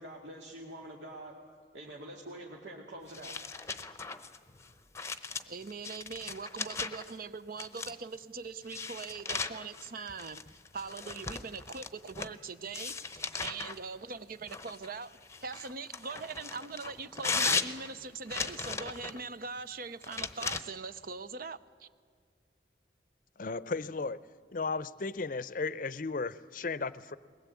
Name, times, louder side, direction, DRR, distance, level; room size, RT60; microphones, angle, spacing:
voice 1, 0.0-1.4 1.7-3.4, right 1 dB, 80° right, -2 dB, 2.3 m, -45 dB
sound 1, 3.1-7.1 7.6-8.2 8.7-12.4 12.7-13.8 14.5-19.2 20.0-20.6, left 4 dB, 15° left, 0.8 m, -37 dB
voice 2, 5.5-10.4 10.7-21.9, right 4 dB, 55° right, 14 dB, 0.7 m, -42 dB
voice 3, 23.4-24.2 24.5-27.2, left 4 dB, 50° left, 16 dB, 0.6 m, -35 dB
21.5 x 20.0 x 8.4 m, 2.1 s
head